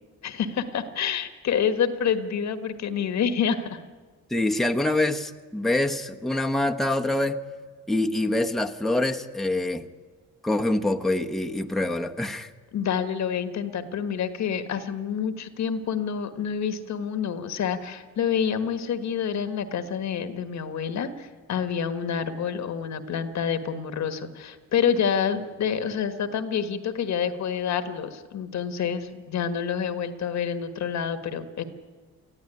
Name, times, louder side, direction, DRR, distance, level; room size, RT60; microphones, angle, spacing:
voice 1, 0.2-3.8 12.7-31.6, left 7 dB, 65° left, 10 dB, 1.5 m, -28 dB
voice 2, 4.3-7.4 7.9-9.8 10.4-12.5, left 1 dB, ahead, 3 dB, 1.1 m, -25 dB
20.5 x 14.0 x 9.9 m, 1.4 s
cardioid pair, 90°, 30 cm